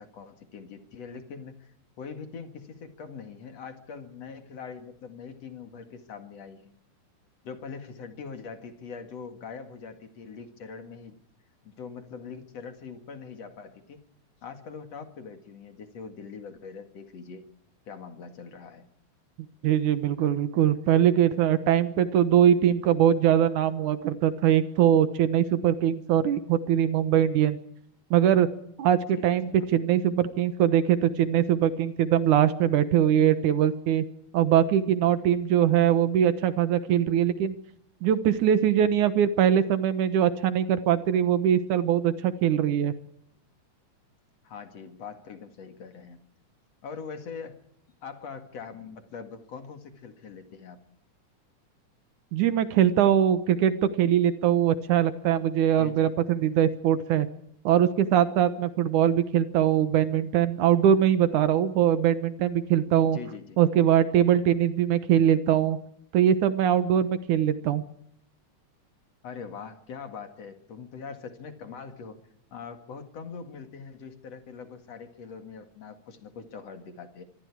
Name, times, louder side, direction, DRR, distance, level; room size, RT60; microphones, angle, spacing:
voice 1, 0.0-6.7 7.4-11.2 11.6-14.0 14.4-17.5 17.9-18.9 29.1-29.7 44.4-46.2 46.8-47.6 48.0-50.8 55.7-56.1 63.1-63.6 69.2-72.2 72.5-77.2, left 5 dB, 55° left, 7 dB, 3.0 m, -42 dB
voice 2, 19.6-27.6 28.1-28.5 28.8-34.1 34.3-37.6 38.0-42.9 52.3-57.3 57.6-63.2 63.6-65.8 66.1-67.8, right 10 dB, 75° right, 12 dB, 2.6 m, -22 dB
25.5 x 25.0 x 4.8 m, 0.70 s
omnidirectional pair, 3.6 m